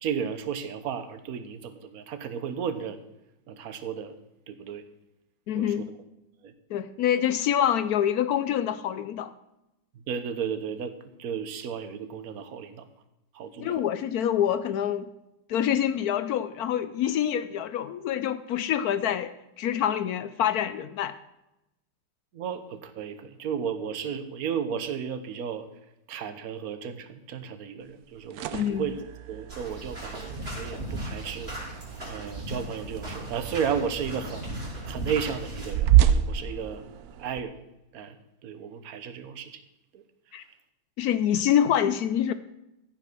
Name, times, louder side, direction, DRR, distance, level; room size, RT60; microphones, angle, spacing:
voice 1, 0.0-3.0 3.5-4.1 4.5-4.8 5.5-5.7 6.4-6.5 10.1-10.9 11.2-12.8 13.3-13.8 22.3-25.6 26.1-31.5 32.0-36.8 37.2-37.6 37.9-38.2 38.4-39.6 39.9-40.0, right 7 dB, 55° right, 10 dB, 1.2 m, -34 dB
voice 2, 5.5-5.9 6.7-9.3 13.6-15.1 15.5-19.3 19.6-21.1 28.5-28.9 40.3-40.4 41.0-42.3, left 10 dB, 80° left, 13 dB, 0.8 m, -26 dB
sound 1, 28.0-37.4, right 11 dB, 75° right, 0.8 m, -29 dB
sound 2, 29.5-35.7, right 1 dB, 30° right, 4.8 m, -37 dB
15.0 x 5.9 x 6.1 m, 0.91 s
omnidirectional pair, 2.2 m